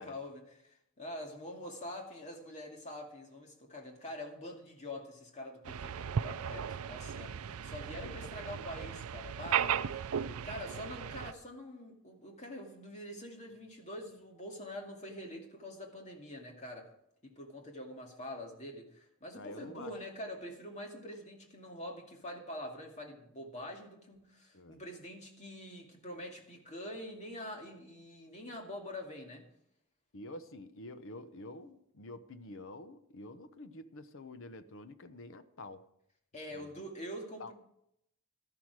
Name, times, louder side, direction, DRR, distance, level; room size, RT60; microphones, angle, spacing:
voice 1, 0.0-16.9 17.2-29.5 36.3-37.5, left 1 dB, 30° left, 1 dB, 2.4 m, -45 dB
sound 1, 5.6-11.3, right 8 dB, 75° right, 0.5 m, -36 dB
voice 2, 8.0-8.7 10.2-10.4 19.3-19.9 24.5-24.8 30.1-35.8 36.5-36.7 37.4-37.5, left 2 dB, 60° left, 11 dB, 1.0 m, -48 dB
13.0 x 11.5 x 4.8 m, 0.76 s
head